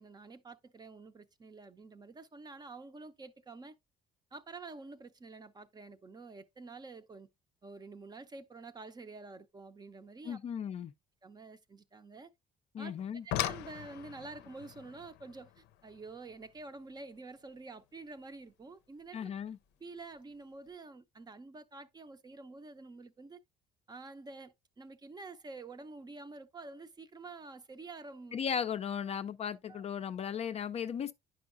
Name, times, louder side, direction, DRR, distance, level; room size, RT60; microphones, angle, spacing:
voice 1, 0.0-3.8 4.3-7.3 7.6-10.4 11.2-12.3 12.8-12.9 13.2-19.3 19.8-23.4 23.9-28.3 29.7-29.8, right 3 dB, 25° right, 0.6 m, -48 dB
voice 2, 10.2-10.9 12.7-13.2 19.1-19.6 28.3-31.1, left 8 dB, 40° left, 0.4 m, -36 dB
sound 1, 13.0-18.0 19.4-19.5 20.1-20.4 20.7-20.8, left 13 dB, 90° left, 0.5 m, -41 dB
9.4 x 5.4 x 2.5 m
cardioid pair, 110°, 17 cm